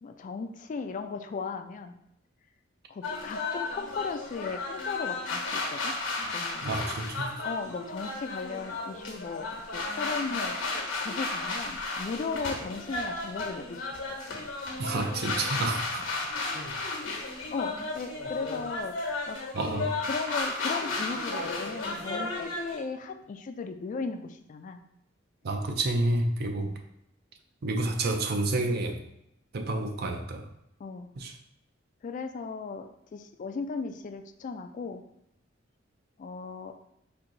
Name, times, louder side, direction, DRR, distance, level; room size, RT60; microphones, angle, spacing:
voice 1, 0.0-2.0 2.9-5.9 6.3-6.7 7.4-14.2 15.6-16.1 17.5-18.9 19.3-19.4 19.7-24.8 26.6-26.7 30.8-31.1 32.0-35.0 36.2-36.7, left 4 dB, 40° left, 7 dB, 0.3 m, -37 dB
sound 1, 3.0-22.8, left 3 dB, 90° left, 1.1 m, -34 dB
voice 2, 6.6-7.3 14.8-16.0 19.5-19.9 25.4-26.7 27.6-29.0 29.5-30.5 31.2-31.3, right 2 dB, 55° right, 5 dB, 0.5 m, -29 dB
4.4 x 2.7 x 3.8 m, 0.79 s
head